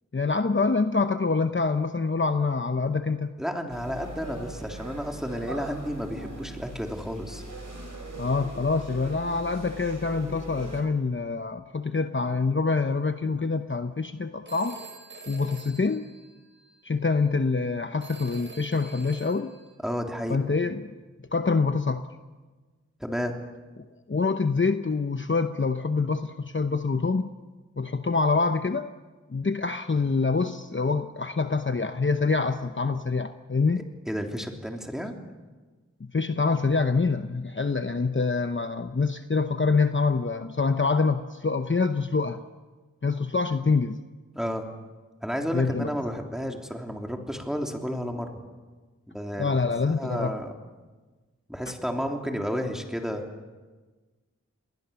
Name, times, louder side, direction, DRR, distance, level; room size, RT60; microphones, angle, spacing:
voice 1, 0.1-3.4 8.1-14.8 15.3-16.1 16.8-19.5 20.3-20.9 21.3-22.1 23.8-27.3 27.8-28.9 29.3-33.9 36.0-42.4 43.0-44.0 45.5-45.9 49.4-50.4, left 4 dB, 40° left, 8 dB, 0.9 m, -26 dB
voice 2, 3.4-7.4 19.8-20.4 23.0-23.3 34.1-35.1 44.3-44.7 45.2-48.4 49.1-49.6 50.0-50.5 51.5-53.2, equal, ahead, 2 dB, 3.2 m, -31 dB
sound 1, 3.7-10.8, right 1 dB, 80° right, 4.9 m, -40 dB
Telephone, 14.5-16.8 18.0-19.7, right 3 dB, 40° right, 5.0 m, -46 dB
28.0 x 20.5 x 7.0 m, 1.3 s
wide cardioid pair, 50°, 30 cm